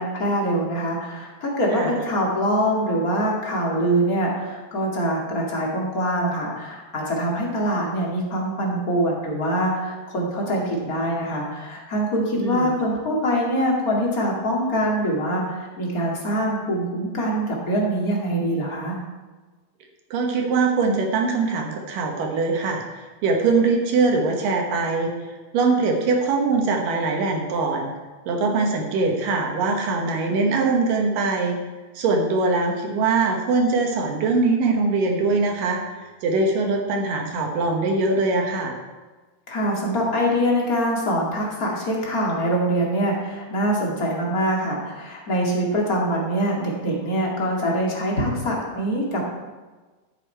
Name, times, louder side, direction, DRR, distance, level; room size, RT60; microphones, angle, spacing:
voice 1, 0.0-19.0 39.5-49.3, equal, 35° left, -3 dB, 1.5 m, -24 dB
voice 2, 20.1-25.1 25.5-27.9 28.3-31.6 32.0-38.8, right 3 dB, 65° right, 2 dB, 2.5 m, -22 dB
13.0 x 8.4 x 4.5 m, 1.3 s
omnidirectional pair, 4.8 m